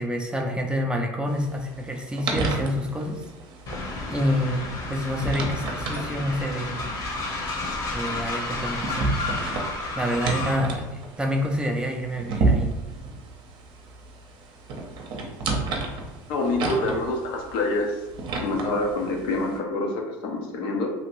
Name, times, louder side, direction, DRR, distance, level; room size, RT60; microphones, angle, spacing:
voice 1, 0.0-3.2 4.1-4.6 4.9-6.9 7.9-9.1 10.0-12.7, equal, 10° right, 2 dB, 0.4 m, -27 dB
sound 1, 1.3-19.6, right 3 dB, 50° right, 0.6 m, -32 dB
Train, 3.7-10.7, left 2 dB, 40° left, 0.9 m, -31 dB
voice 2, 16.3-18.0 18.4-20.9, left 2 dB, 65° left, 2 dB, 0.6 m, -26 dB
2.7 x 2.5 x 3.0 m, 1.1 s
supercardioid pair, 95°, 10 cm